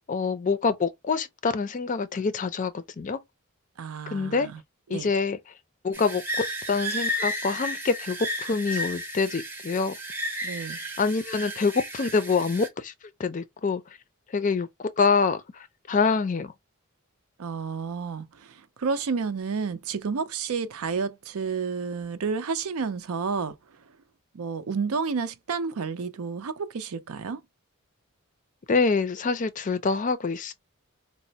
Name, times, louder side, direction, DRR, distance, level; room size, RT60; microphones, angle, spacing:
voice 1, 0.1-3.2 4.1-4.5 4.9-5.4 5.8-10.0 11.0-12.9 13.2-13.8 14.3-16.5 28.7-30.5, left 4 dB, 35° left, 0.4 m, -26 dB
voice 2, 3.8-4.6 4.9-5.1 10.4-10.8 17.4-23.5 24.3-27.4, right 5 dB, 80° right, 0.5 m, -30 dB
sound 1, 5.9-12.7, equal, 10° right, 0.7 m, -33 dB
4.1 x 2.0 x 2.7 m
head